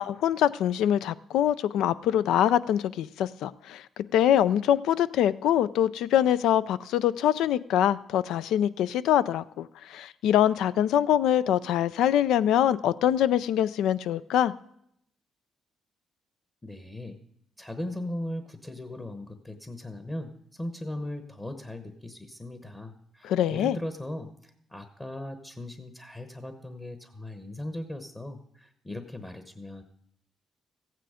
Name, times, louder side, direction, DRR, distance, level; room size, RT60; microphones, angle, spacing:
voice 1, 0.0-3.8 4.1-14.5 23.2-23.8, left 10 dB, 85° left, 17 dB, 0.4 m, -24 dB
voice 2, 16.6-17.2 17.6-29.8, left 1 dB, 20° left, 8 dB, 1.1 m, -38 dB
15.0 x 9.1 x 5.0 m, 0.73 s
cardioid pair, 90°, 0 cm